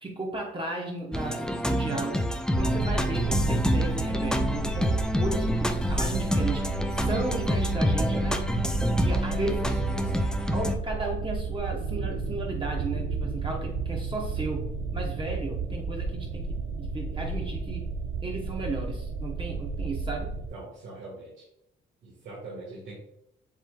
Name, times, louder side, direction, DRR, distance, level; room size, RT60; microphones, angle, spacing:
voice 1, 0.0-2.2 2.5-8.4 9.0-9.7 10.5-17.9 18.2-20.3, right 2 dB, 25° right, -1 dB, 1.0 m, -35 dB
sound 1, 1.1-10.8, equal, 5° left, 0.4 m, -27 dB
sound 2, 2.5-20.5, right 4 dB, 85° right, 0.6 m, -33 dB
voice 2, 5.6-6.0 9.4-9.6 9.9-10.2 20.5-21.5 22.0-23.0, right 2 dB, 70° right, -5 dB, 1.5 m, -43 dB
7.3 x 3.2 x 2.2 m, 0.81 s
cardioid pair, 90°, 20 cm